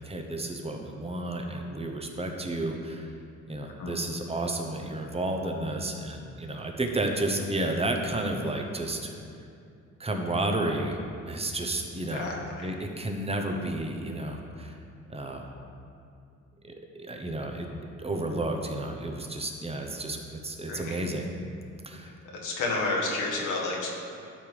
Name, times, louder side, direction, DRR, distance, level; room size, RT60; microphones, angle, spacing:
voice 1, 0.0-3.1 3.5-9.1 10.0-11.0 11.3-12.3 12.6-14.8 15.1-15.5 16.6-17.7 18.0-21.3 21.8-22.1, right 1 dB, 20° right, 3 dB, 0.9 m, -32 dB
voice 2, 12.1-12.7 20.7-21.0 22.3-23.9, left 2 dB, 85° left, -2 dB, 1.3 m, -30 dB
12.0 x 4.7 x 3.4 m, 2.5 s
cardioid pair, 90°, 30 cm